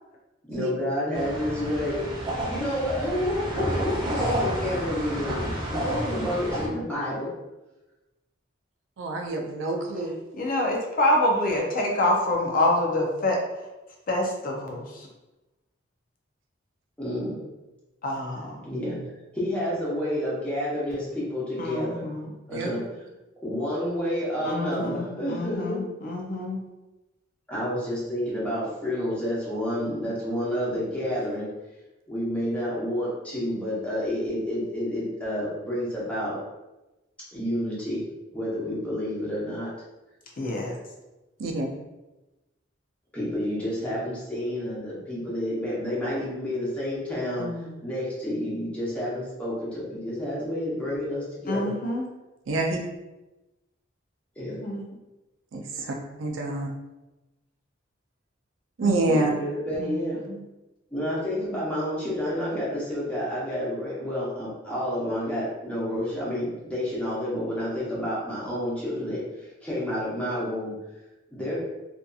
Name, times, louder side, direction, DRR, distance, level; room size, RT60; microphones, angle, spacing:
voice 1, 0.5-2.1 2.5-7.3 17.0-17.4 18.6-22.1 22.5-22.8 23.4-25.8 27.5-31.5 32.1-36.3 37.3-39.7 43.1-47.5 47.8-51.8 54.4-54.6 59.1-60.2 60.9-70.7 71.3-71.6, equal, 5° left, -8 dB, 0.8 m, -29 dB
sound 1, 1.1-6.7, right 1 dB, 20° right, 0.5 m, -30 dB
voice 2, 9.0-10.1 22.5-22.7 41.4-41.7 52.5-52.8 55.5-55.6 56.2-56.7 58.8-59.3, right 2 dB, 75° right, 2 dB, 0.4 m, -26 dB
voice 3, 10.3-13.4 14.1-15.1 18.0-18.6 21.6-22.3 24.4-26.6 40.4-40.8 47.4-47.7 51.5-52.1 54.6-54.8 58.8-59.1 59.8-60.0 60.3-60.4, left 1 dB, 45° left, 0 dB, 0.4 m, -27 dB
2.6 x 2.5 x 2.3 m, 1.0 s
head